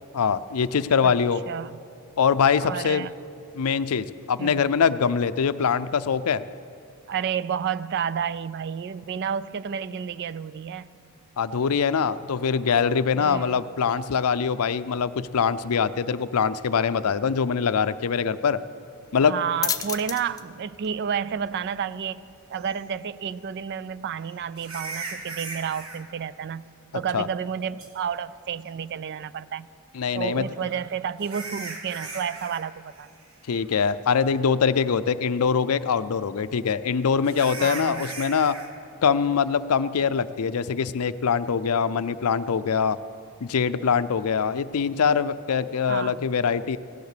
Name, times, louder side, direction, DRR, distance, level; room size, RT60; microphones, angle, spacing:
voice 1, 0.1-1.4 2.2-3.1 3.5-6.4 11.4-18.6 19.1-19.3 27.1-27.3 29.9-30.5 33.5-38.6 39.0-43.0 43.4-46.8, left 6 dB, 80° left, 14 dB, 0.5 m, -23 dB
voice 2, 1.5-1.8 2.6-3.1 4.4-4.7 7.1-10.9 13.1-13.6 19.2-26.7 26.9-29.7 30.1-33.1 37.6-38.1 45.9-46.2, right 7 dB, 50° right, 17 dB, 0.3 m, -31 dB
sound 1, 19.0-26.3, left 7 dB, 15° left, 0.5 m, -38 dB
sound 2, 22.7-22.8 24.6-26.0 27.8-27.9 30.4-32.6 32.9-33.2 33.6-33.7 34.3-34.4 37.2-38.7, right 3 dB, 65° right, 1.7 m, -37 dB
17.0 x 11.0 x 6.7 m, 2.6 s
head